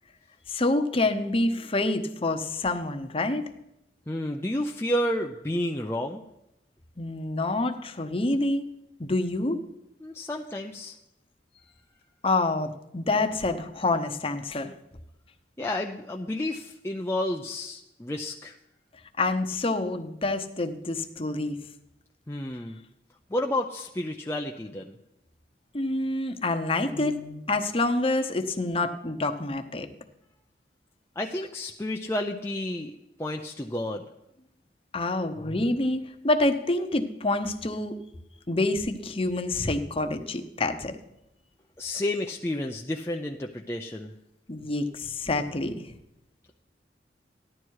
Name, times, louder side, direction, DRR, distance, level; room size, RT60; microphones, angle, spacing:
voice 1, 0.5-3.4 7.0-8.6 9.0-9.6 12.2-14.7 19.2-21.6 25.7-29.9 34.9-38.0 38.5-41.0 44.5-45.9, left 2 dB, 30° left, 7 dB, 0.9 m, -27 dB
voice 2, 4.1-6.2 10.0-11.0 15.6-18.6 22.3-22.8 23.3-25.0 31.2-34.0 41.8-44.1, left 1 dB, 15° left, 0 dB, 0.5 m, -31 dB
15.0 x 11.5 x 4.7 m, 0.87 s
head